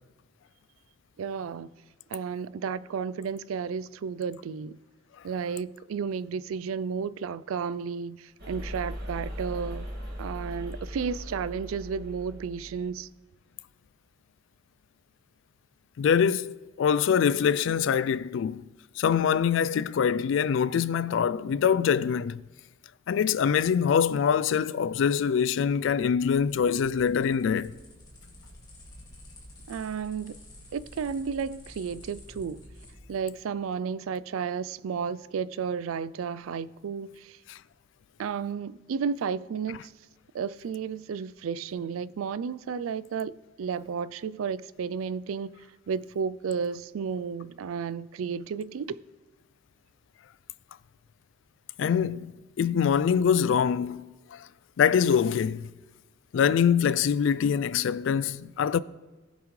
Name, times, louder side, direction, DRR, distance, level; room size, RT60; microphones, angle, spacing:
voice 1, 1.2-1.7 2.1-4.8 5.2-9.9 10.2-13.1 29.7-30.4 30.7-32.6 33.1-37.4 38.2-39.9 40.3-45.5 45.9-49.0, right 6 dB, 90° right, 0.4 m, -32 dB
sound 1, 8.4-12.9, equal, 50° right, 2.1 m, -38 dB
voice 2, 16.0-18.7 19.0-22.4 23.1-27.7 37.5-37.6 51.8-54.1 54.8-55.7 56.3-58.8, left 7 dB, 65° left, 0.3 m, -24 dB
sound 2, 25.7-33.2, left 1 dB, 20° left, 2.0 m, -50 dB
19.0 x 7.1 x 3.2 m
head